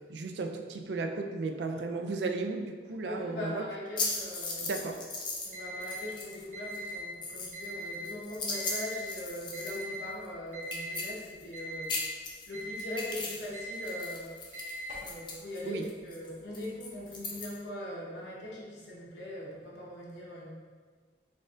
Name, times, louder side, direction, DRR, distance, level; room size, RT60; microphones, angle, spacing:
voice 1, 0.1-3.6 4.6-5.0 15.7-15.8, right 3 dB, 70° right, 4 dB, 0.4 m, -34 dB
voice 2, 3.0-4.7 5.4-12.0 12.5-14.3 15.0-20.5, left 1 dB, 70° left, -5 dB, 0.9 m, -41 dB
sound 1, 4.0-5.5 5.8-6.4 6.7-10.0 10.2-10.3 10.6-11.6 11.8-13.5 13.7-17.5, left 3 dB, 25° left, 0.6 m, -37 dB
Alarm, 5.5-6.0 6.5-7.0 7.5-8.0 8.5-9.0 9.5-10.0 10.5-11.0 11.5-12.0 12.5-13.0 13.5-14.0 14.5-15.1, right 1 dB, 45° right, 1.3 m, -40 dB
4.1 x 2.5 x 3.7 m, 1.5 s
head